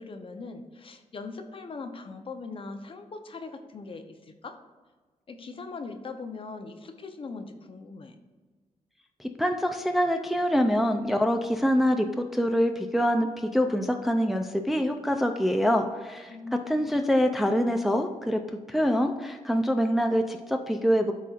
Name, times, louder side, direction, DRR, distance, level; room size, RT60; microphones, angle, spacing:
voice 1, 0.0-4.6 5.3-8.2 16.3-16.9, left 4 dB, 40° left, 7 dB, 0.7 m, -40 dB
voice 2, 9.4-16.4 16.7-18.4 18.7-21.1, equal, ahead, 5 dB, 0.4 m, -25 dB
12.0 x 4.2 x 2.4 m, 1.4 s
cardioid pair, 115°, 13 cm